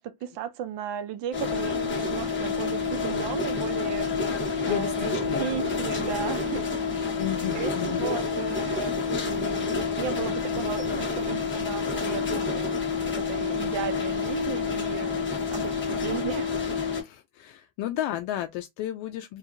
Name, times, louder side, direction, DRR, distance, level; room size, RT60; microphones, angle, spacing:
voice 1, 0.0-4.1 4.7-6.7 7.5-12.7 13.1-16.5, right 9 dB, 70° right, 0.6 m, -35 dB
sound 1, 1.3-17.0, left 5 dB, 25° left, 1.0 m, -28 dB
voice 2, 4.6-5.5 7.2-8.1 17.0-19.4, left 12 dB, 80° left, 0.5 m, -33 dB
2.7 x 2.3 x 2.5 m
cardioid pair, 120°, 44 cm